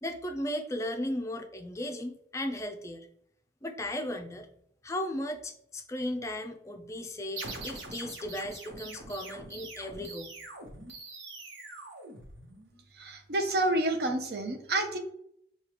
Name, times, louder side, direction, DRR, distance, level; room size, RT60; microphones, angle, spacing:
voice 1, 0.0-3.1 3.6-4.5 4.8-10.3, left 1 dB, 15° left, 4 dB, 0.4 m, -36 dB
sound 1, 7.4-12.8, right 2 dB, 90° right, 1.0 m, -44 dB
voice 2, 12.9-15.0, right 1 dB, 55° right, 5 dB, 0.7 m, -29 dB
6.6 x 2.3 x 2.9 m, 0.70 s
head